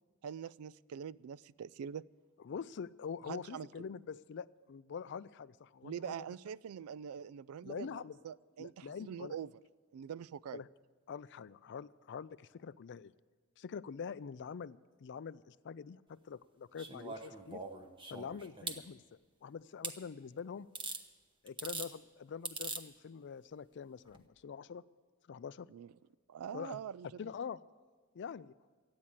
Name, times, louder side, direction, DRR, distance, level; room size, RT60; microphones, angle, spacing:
voice 1, 0.2-2.0 3.3-3.7 5.8-9.5 9.9-10.6 25.7-25.9 26.3-27.1, right 8 dB, 80° right, 19 dB, 0.3 m, -44 dB
voice 2, 2.4-6.1 7.6-8.2 8.6-9.4 10.5-10.7 11.1-13.1 13.6-17.6 18.1-19.0 19.4-20.7 21.4-24.8 25.3-25.7 26.5-26.8 27.2-27.6 28.1-28.5, left 6 dB, 55° left, 17 dB, 0.4 m, -45 dB
sound 1, 16.8-18.8 19.8-20.0 20.8-21.0 21.5-21.9 22.5-22.8 24.1-24.2, right 3 dB, 25° right, 0.9 m, -42 dB
14.0 x 9.7 x 8.8 m, 1.4 s
head